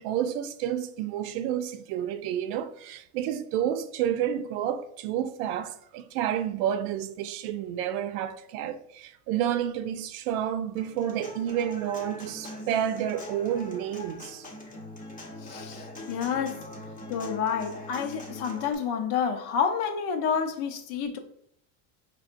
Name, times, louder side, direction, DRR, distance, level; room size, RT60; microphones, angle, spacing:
voice 1, 0.0-14.4, right 10 dB, 85° right, 0.6 m, -30 dB
Human voice / Acoustic guitar, 10.8-18.7, left 1 dB, 20° left, 0.7 m, -42 dB
voice 2, 15.4-16.6 17.1-21.2, left 7 dB, 65° left, 0.8 m, -29 dB
4.8 x 3.3 x 2.5 m
cardioid pair, 135°, 41 cm